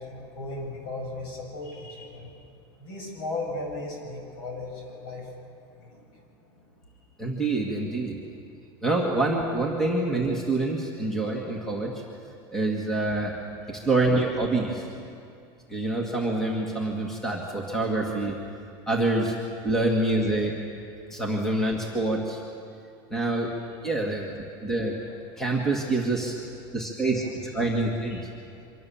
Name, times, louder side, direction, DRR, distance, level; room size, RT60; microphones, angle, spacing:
voice 1, 0.0-2.3 2.8-5.4 5.8-6.2 6.5-6.6 14.6-15.0 23.9-24.4 24.9-25.0 26.3-26.4 27.2-28.2 28.5-28.7, left 2 dB, 60° left, 0 dB, 7.8 m, -38 dB
voice 2, 7.2-8.2 8.8-11.9 12.5-13.3 13.7-14.9 15.7-18.4 18.9-19.3 19.6-20.5 21.1-22.4 23.1-23.5 23.8-24.3 24.6-24.9 25.4-26.4 26.7-28.2, right 2 dB, 5° left, -1 dB, 1.9 m, -26 dB
25.0 x 23.0 x 7.1 m, 2.4 s
supercardioid pair, 175°, 13 cm